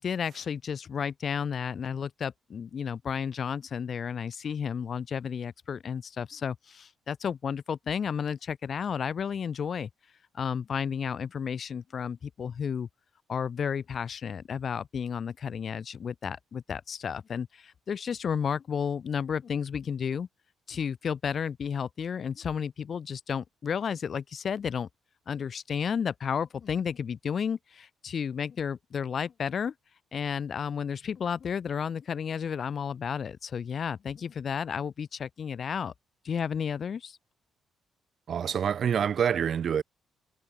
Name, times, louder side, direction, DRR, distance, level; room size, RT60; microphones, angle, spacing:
voice 1, 0.0-9.9 10.3-12.9 13.3-20.3 20.7-24.9 25.3-29.7 30.1-35.9 36.2-37.2, left 7 dB, 50° left, 3.3 m, -32 dB
voice 2, 38.3-39.8, right 8 dB, 55° right, 2.5 m, -26 dB
cardioid pair, 90°, 0 cm